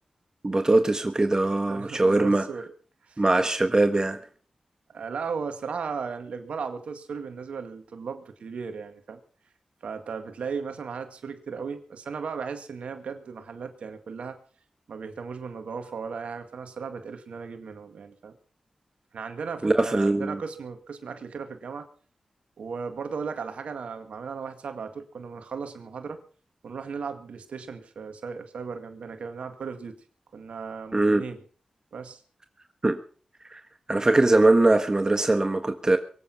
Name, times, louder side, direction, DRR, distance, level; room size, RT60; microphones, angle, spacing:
voice 1, 0.4-2.4 3.2-4.2 19.6-20.4 30.9-31.2 32.8-33.0 33.5-33.6 33.9-36.0, right 2 dB, 35° right, 1.5 m, -21 dB
voice 2, 1.7-2.7 3.0-3.2 4.9-9.2 9.8-14.4 14.9-18.4 19.1-21.9 22.6-26.2 26.6-30.0 30.3-31.4 31.9-32.2, right 5 dB, 80° right, 2.1 m, -36 dB
23.5 x 8.5 x 5.9 m
cardioid pair, 45°, 2 cm